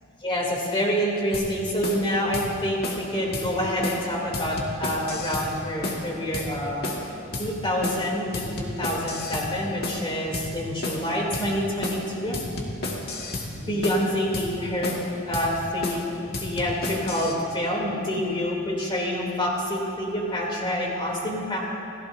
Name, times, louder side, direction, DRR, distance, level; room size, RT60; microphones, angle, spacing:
voice 1, 0.2-6.9 7.4-8.2 8.5-12.4 13.6-14.9 15.3-16.1 16.4-21.6, equal, 25° left, -3 dB, 3.1 m, -27 dB
sound 1, 1.3-1.5 1.8-2.0 2.3-2.5 2.8-3.1 3.3-3.5 3.8-4.0 4.3-5.5 5.8-6.1 6.3-6.5 6.8-7.1 7.3-7.5 7.8-8.1 8.3-9.5 9.8-10.0 10.3-10.5 10.8-11.1 11.3-11.5 11.8-12.1 12.3-13.5 13.8-14.0 14.3-14.5 14.8-15.1 15.3-15.5 15.8-16.0 16.3-17.3, left 2 dB, 45° left, 1.9 m, -31 dB
29.0 x 15.0 x 2.7 m, 2.7 s
head